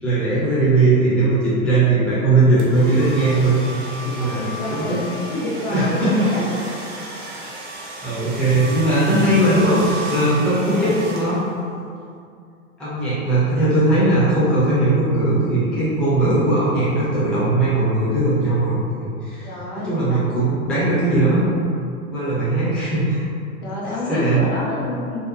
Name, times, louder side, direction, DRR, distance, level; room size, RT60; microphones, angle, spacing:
voice 1, 0.0-3.6 4.0-4.4 4.7-5.0 5.7-6.3 8.0-11.4 12.8-19.5 19.7-21.6 22.1-23.3 24.1-24.4, right 2 dB, ahead, -11 dB, 0.5 m, -19 dB
sound 1, 2.6-11.7, right 2 dB, 45° right, 0.6 m, -34 dB
voice 2, 4.2-6.6 10.4-11.0 19.4-20.2 20.7-20.8 23.6-25.2, left 1 dB, 75° left, -6 dB, 0.9 m, -28 dB
2.7 x 2.1 x 2.6 m, 2.3 s
figure-of-eight pair, 100°, 43 cm